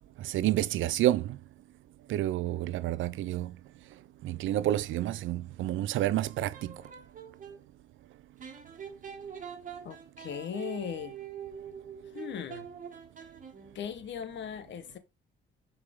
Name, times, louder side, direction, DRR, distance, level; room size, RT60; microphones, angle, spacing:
voice 1, 0.2-1.4 2.1-3.5 4.2-6.5, right 13 dB, 80° right, 0.5 m, -29 dB
sound 1, 6.2-7.6 8.4-13.9, right 8 dB, 40° right, 2.0 m, -44 dB
voice 2, 9.8-11.2 12.1-12.7 13.7-15.0, left 8 dB, 65° left, 1.2 m, -38 dB
6.8 x 4.7 x 3.6 m
cardioid pair, 90°, 20 cm